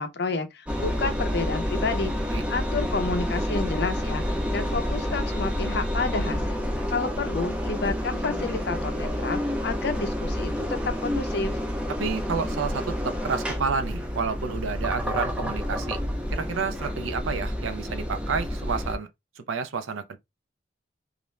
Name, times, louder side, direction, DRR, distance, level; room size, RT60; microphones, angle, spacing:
voice 1, 0.0-2.1 2.5-6.6 6.9-11.6, left 4 dB, 55° left, 0.5 m, -30 dB
Engine, 0.7-19.0, equal, 5° right, 0.5 m, -29 dB
voice 2, 12.0-16.0 16.3-19.1 19.4-20.2, right 5 dB, 85° right, 0.4 m, -30 dB
2.5 x 2.1 x 3.0 m
head